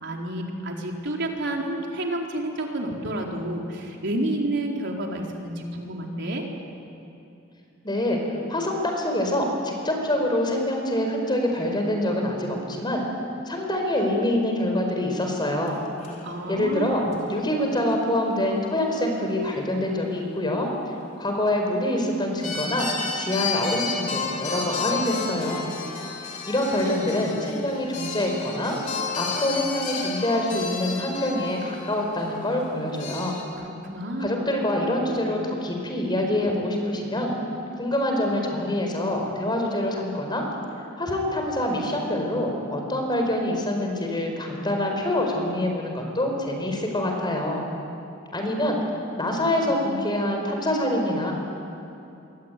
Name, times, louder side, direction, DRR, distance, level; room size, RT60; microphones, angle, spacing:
voice 1, 0.0-6.4 16.2-17.2 33.8-34.3, right 1 dB, 60° right, 0 dB, 4.3 m, -29 dB
voice 2, 7.8-8.2 8.5-13.0 13.5-15.8 16.5-20.7 21.2-22.9 23.2-25.7 26.5-28.8 29.2-33.4 34.2-37.4 37.8-40.4 41.0-47.6 48.3-48.8 49.2-51.3, left 1 dB, 25° left, 2 dB, 4.9 m, -25 dB
sound 1, 15.7-15.8 16.0-16.4 17.1-17.2 22.4-33.4, left 5 dB, 40° left, 4.4 m, -32 dB
26.5 x 24.0 x 9.4 m, 2.8 s
head